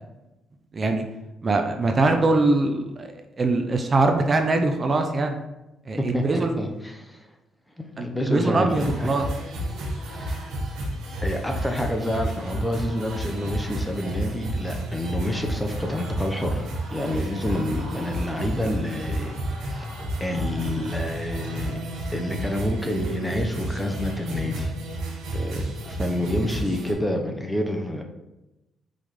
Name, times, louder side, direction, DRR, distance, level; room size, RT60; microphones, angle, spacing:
voice 1, 0.7-1.0 1.4-3.1 3.4-5.4 5.9-6.5 8.0-9.2, right 2 dB, 35° right, 5 dB, 0.7 m, -22 dB
voice 2, 6.0-7.3 7.8-9.2 10.0-10.5 11.2-19.4 19.6-19.8 20.2-21.8 22.1-24.7 25.3-28.0, left 1 dB, 5° left, 3 dB, 0.9 m, -28 dB
sound 1, 8.7-26.9, right 1 dB, 90° right, 1.7 m, -31 dB
5.2 x 3.8 x 4.9 m, 0.97 s
cardioid pair, 90°, 0 cm